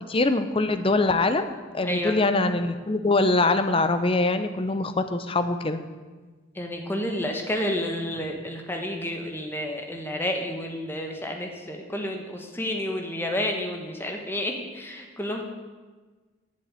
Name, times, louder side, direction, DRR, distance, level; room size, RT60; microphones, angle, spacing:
voice 1, 0.1-1.5 1.7-5.8, left 2 dB, 25° left, 10 dB, 0.6 m, -23 dB
voice 2, 1.8-2.2 6.5-15.4, left 1 dB, 10° left, 2 dB, 1.1 m, -30 dB
7.6 x 7.4 x 8.2 m, 1.4 s
head